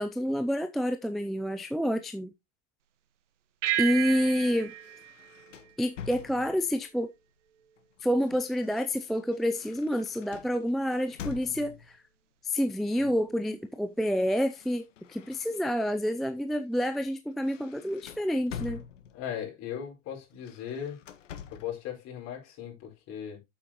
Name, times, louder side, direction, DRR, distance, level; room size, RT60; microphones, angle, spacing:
voice 1, 0.0-2.3 3.8-4.7 5.8-7.1 8.0-12.0 12.4-18.8, equal, ahead, 0.4 m, -28 dB
sound 1, 3.6-6.4, right 13 dB, 75° right, 1.5 m, -33 dB
sound 2, 3.7-6.8 7.8-12.0 13.0-13.4 13.7-16.0 16.4-16.6 17.0-19.4 20.3-21.8, left 8 dB, 85° left, 1.6 m, -47 dB
voice 2, 19.1-21.0 21.5-23.4, left 9 dB, 45° left, 5.1 m, -38 dB
8.7 x 7.9 x 3.0 m
hypercardioid pair, 120°, 36 cm